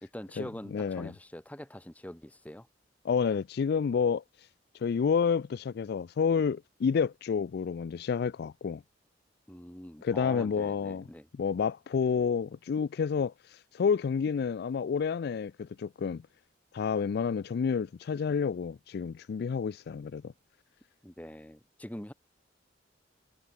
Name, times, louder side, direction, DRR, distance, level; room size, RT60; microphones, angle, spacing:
voice 1, 0.0-2.7 9.5-11.3 21.0-22.1, left 1 dB, 10° left, 1.1 m, -44 dB
voice 2, 0.7-1.1 3.0-4.2 4.8-8.8 10.0-11.0 11.4-16.2 16.7-20.3, left 6 dB, 60° left, 0.3 m, -29 dB
head